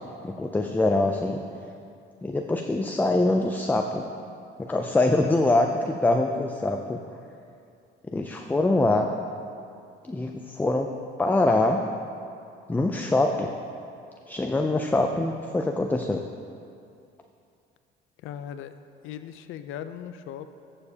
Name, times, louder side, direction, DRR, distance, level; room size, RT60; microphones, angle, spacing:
voice 1, 0.2-1.4 2.2-4.0 4.6-7.0 8.1-9.1 10.1-10.9 11.2-11.8 12.7-13.5 14.3-16.2, left 2 dB, 10° left, 4 dB, 0.4 m, -24 dB
voice 2, 18.2-18.7 19.0-20.5, left 9 dB, 70° left, 11 dB, 0.5 m, -38 dB
13.5 x 7.0 x 2.8 m, 2.4 s
cardioid pair, 105°, 21 cm